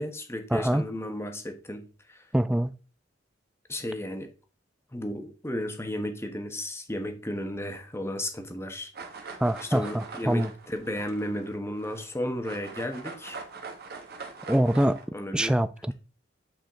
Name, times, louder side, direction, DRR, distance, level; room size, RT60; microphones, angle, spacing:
voice 1, 0.0-2.2 3.7-4.3 4.9-8.9 9.2-13.4 15.1-15.6, left 1 dB, 15° left, 1.2 m, -34 dB
voice 2, 0.5-0.8 2.3-2.7 9.4-10.5 14.5-15.0 15.3-15.9, right 1 dB, 5° right, 0.4 m, -24 dB
sound 1, 8.9-12.1 12.4-15.0, right 4 dB, 55° right, 1.4 m, -42 dB
9.0 x 5.0 x 3.7 m
head